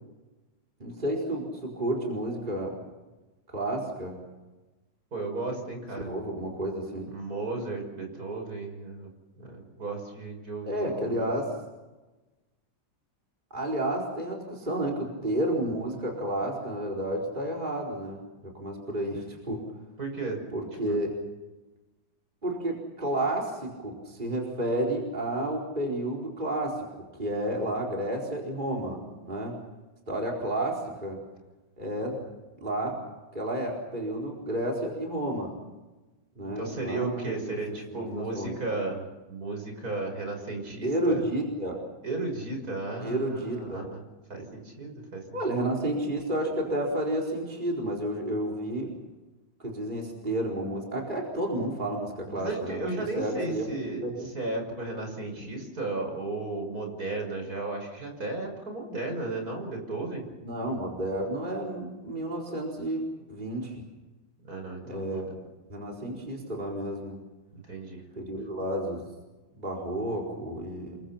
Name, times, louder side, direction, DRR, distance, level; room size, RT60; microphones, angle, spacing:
voice 1, 0.8-2.8 3.5-4.2 6.0-7.0 10.7-11.5 13.5-19.7 20.5-21.2 22.4-26.9 27.2-29.6 30.1-31.2 31.8-32.2 32.6-33.0 33.3-35.6 36.4-37.6 37.9-38.6 40.8-41.8 43.0-43.9 45.3-48.9 49.6-52.9 53.2-53.7 54.0-54.3 60.4-63.8 64.8-65.3 65.7-67.2 68.2-69.1 69.6-71.0, right 1 dB, 25° right, -1 dB, 4.7 m, -31 dB
voice 2, 5.1-6.1 7.1-9.1 9.4-11.3 20.0-20.4 20.9-21.0 36.4-41.2 42.0-44.0 44.3-45.6 52.4-60.2 64.5-65.4 67.5-68.0, right 3 dB, 50° right, 3 dB, 6.4 m, -34 dB
29.5 x 24.0 x 5.8 m, 1.1 s
omnidirectional pair, 2.1 m